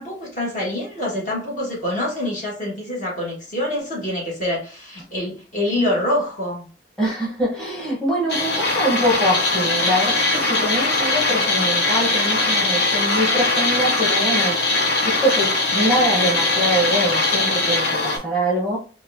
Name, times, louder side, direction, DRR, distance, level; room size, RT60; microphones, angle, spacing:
voice 1, 0.0-6.6, left 1 dB, 45° left, 1.6 m, -25 dB
voice 2, 7.0-18.8, equal, 5° left, 1.0 m, -24 dB
sound 1, 8.3-18.2, left 2 dB, 65° left, 0.9 m, -20 dB
4.0 x 2.6 x 2.6 m
head